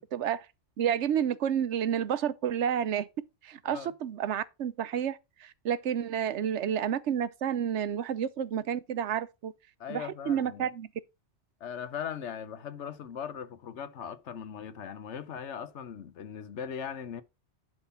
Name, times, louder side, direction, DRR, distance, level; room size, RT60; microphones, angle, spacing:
voice 1, 0.1-0.5 0.8-3.1 3.4-9.5 9.9-10.9, right 9 dB, 80° right, 1.0 m, -30 dB
voice 2, 9.8-10.7 11.6-17.2, left 8 dB, 75° left, 1.1 m, -39 dB
10.5 x 3.7 x 5.6 m
omnidirectional pair, 1.2 m